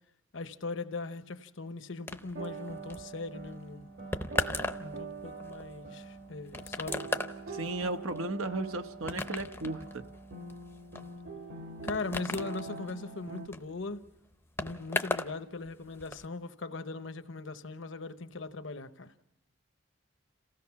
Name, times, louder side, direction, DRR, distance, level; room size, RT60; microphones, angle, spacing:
voice 1, 0.3-3.9 4.8-7.1 11.8-14.0 14.6-19.1, left 3 dB, 65° left, 0.9 m, -39 dB
sound 1, 2.1-15.4 15.6-16.3, left 2 dB, 10° left, 0.6 m, -38 dB
sound 2, 2.4-13.5, right 3 dB, 55° right, 1.3 m, -44 dB
voice 2, 7.5-10.1, right 2 dB, 90° right, 1.2 m, -35 dB
27.5 x 16.0 x 5.9 m
head